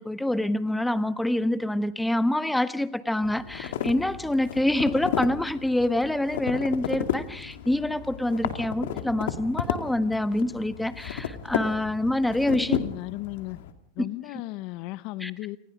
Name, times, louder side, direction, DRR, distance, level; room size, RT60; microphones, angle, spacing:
voice 1, 0.0-12.8 15.2-15.3, left 1 dB, 5° left, 12 dB, 1.4 m, -26 dB
sound 1, 3.2-13.7, left 9 dB, 75° left, 2.5 m, -33 dB
voice 2, 12.6-13.6 13.9-15.6, left 19 dB, 55° left, 17 dB, 1.0 m, -35 dB
28.5 x 20.5 x 5.2 m, 0.65 s
hypercardioid pair, 105°, 0 cm